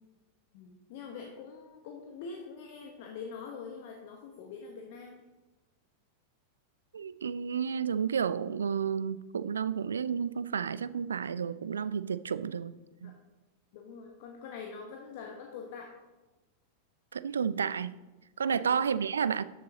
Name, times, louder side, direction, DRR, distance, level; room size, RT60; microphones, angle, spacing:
voice 1, 0.5-5.2 13.0-13.1 13.7-15.9 18.6-19.0, left 5 dB, 50° left, 1.0 m, -44 dB
voice 2, 6.9-12.7 13.0-13.1 17.1-17.9 18.4-19.4, right 7 dB, 70° right, 0.3 m, -31 dB
13.0 x 7.5 x 2.9 m
figure-of-eight pair, 90°, 0 cm